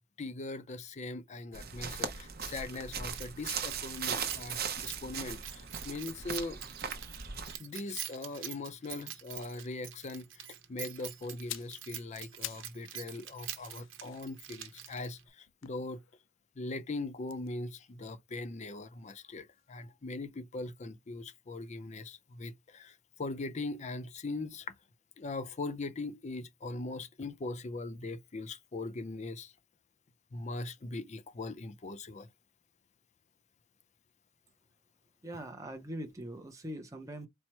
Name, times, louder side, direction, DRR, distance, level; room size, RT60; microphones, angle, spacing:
voice 1, 0.2-6.6 7.6-16.0 16.6-24.7 25.2-29.5 30.3-32.3, left 2 dB, 35° left, 0.5 m, -40 dB
sound 1, 1.5-7.6, right 6 dB, 50° right, 0.8 m, -38 dB
Keys jangling, 3.1-15.3, right 12 dB, 85° right, 0.8 m, -46 dB
sound 2, 11.3-12.8 13.1-16.4 17.2-19.2 19.5-19.7, left 14 dB, 90° left, 0.4 m, -48 dB
voice 2, 35.2-37.3, right 1 dB, 15° right, 0.6 m, -42 dB
4.3 x 2.0 x 4.5 m
head